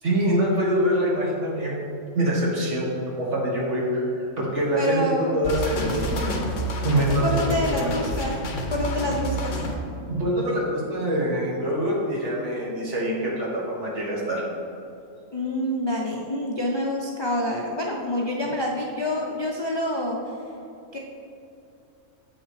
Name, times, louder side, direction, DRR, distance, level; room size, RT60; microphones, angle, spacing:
voice 1, 0.0-1.7 2.1-6.3 6.8-7.9 10.1-14.4, right 1 dB, 65° right, -4 dB, 1.7 m, -25 dB
voice 2, 4.8-5.4 7.1-8.3 8.7-9.5 15.3-20.2 20.9-21.0, left 1 dB, 45° left, -1 dB, 0.3 m, -27 dB
sound 1, 5.4-9.7, equal, 70° left, 1.2 m, -29 dB
7.4 x 6.3 x 3.2 m, 2.6 s
omnidirectional pair, 1.4 m